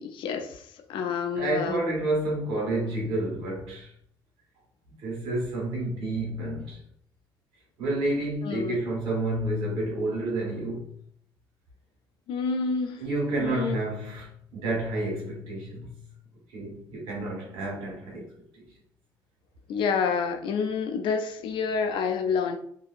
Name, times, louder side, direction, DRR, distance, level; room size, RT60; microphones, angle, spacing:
voice 1, 0.0-1.8 8.4-8.8 12.3-13.0 13.4-13.8 19.7-22.6, left 5 dB, 70° left, 0.4 m, -28 dB
voice 2, 1.3-3.9 5.0-6.8 7.8-10.9 13.0-15.9 16.5-18.7, right 2 dB, 85° right, 1.3 m, -30 dB
2.7 x 2.7 x 2.5 m
cardioid pair, 90°, 9 cm